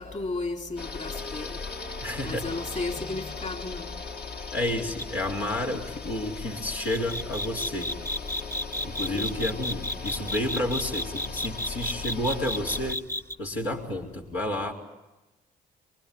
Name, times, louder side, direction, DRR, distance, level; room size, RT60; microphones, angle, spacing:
voice 1, 0.0-1.6 2.2-3.9 9.1-9.4, left 3 dB, 35° left, 3 dB, 3.8 m, -34 dB
sound 1, 0.8-12.9, left 4 dB, 50° left, 2.1 m, -38 dB
voice 2, 2.0-2.5 4.5-7.9 8.8-13.0 13.4-14.7, left 1 dB, 80° left, -4 dB, 4.4 m, -30 dB
sound 2, 5.0-5.2 6.9-13.4, left 1 dB, 10° left, 0.9 m, -32 dB
26.5 x 23.5 x 9.5 m, 1.0 s
hypercardioid pair, 45°, 20 cm